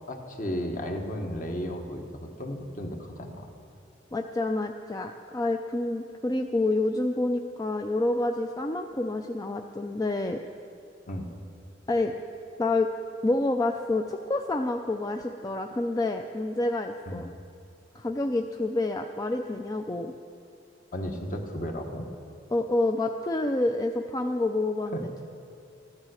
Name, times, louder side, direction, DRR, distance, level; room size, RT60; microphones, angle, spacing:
voice 1, 0.1-3.5 11.1-11.3 17.1-17.2 20.9-22.1 24.9-25.0, equal, 45° left, 3 dB, 1.4 m, -34 dB
voice 2, 4.1-10.4 11.9-12.1 12.6-12.9 13.2-17.3 17.9-20.1 22.5-25.2, left 2 dB, 20° left, 4 dB, 0.4 m, -28 dB
14.5 x 10.5 x 6.4 m, 2.5 s
head